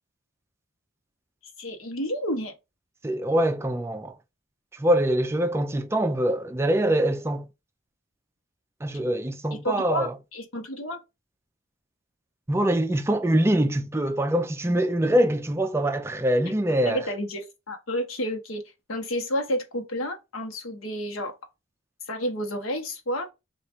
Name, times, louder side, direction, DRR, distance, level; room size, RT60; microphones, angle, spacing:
voice 1, 1.6-2.5 9.6-11.0 16.9-18.6 18.9-21.3 22.1-23.3, equal, 90° left, 0.9 m, -30 dB
voice 2, 3.0-4.1 4.7-7.4 8.8-10.1 12.5-17.1, right 1 dB, 15° right, 0.4 m, -24 dB
3.1 x 2.4 x 4.3 m
head